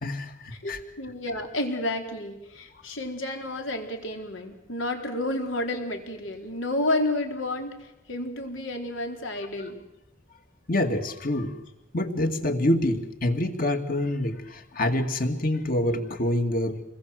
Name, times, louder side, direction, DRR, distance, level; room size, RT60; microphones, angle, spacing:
voice 1, 0.0-0.8 10.7-11.6 11.9-16.8, left 1 dB, 45° left, 6 dB, 2.4 m, -26 dB
voice 2, 0.6-9.8, left 1 dB, 80° left, 3 dB, 4.3 m, -31 dB
28.0 x 21.5 x 7.9 m, 0.88 s
head